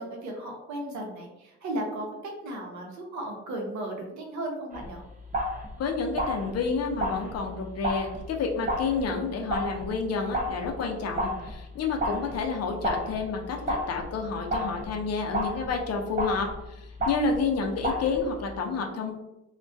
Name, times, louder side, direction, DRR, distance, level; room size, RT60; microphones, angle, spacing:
voice 1, 0.0-5.0, right 1 dB, 70° right, 0 dB, 0.7 m, -35 dB
sound 1, 4.7-18.6, equal, 25° right, 0.6 m, -33 dB
voice 2, 5.8-19.2, left 4 dB, 55° left, 2 dB, 0.5 m, -30 dB
2.3 x 2.1 x 2.5 m, 0.95 s
cardioid pair, 90°, 30 cm